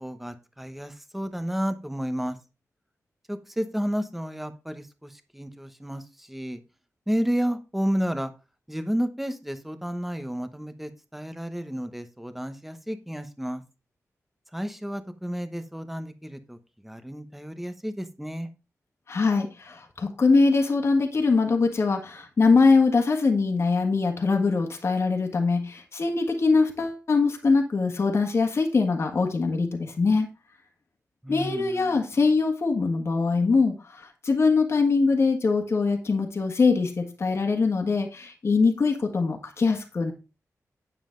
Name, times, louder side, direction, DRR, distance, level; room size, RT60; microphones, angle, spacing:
voice 1, 0.0-2.4 3.3-6.6 7.1-8.3 8.7-13.6 14.5-16.6 16.8-18.5 31.2-32.0, equal, 5° right, 9 dB, 1.0 m, -31 dB
voice 2, 19.1-30.3 31.3-40.1, left 4 dB, 50° left, 3 dB, 1.6 m, -23 dB
9.8 x 7.4 x 3.8 m, 0.30 s
wide cardioid pair, 155°, 6 cm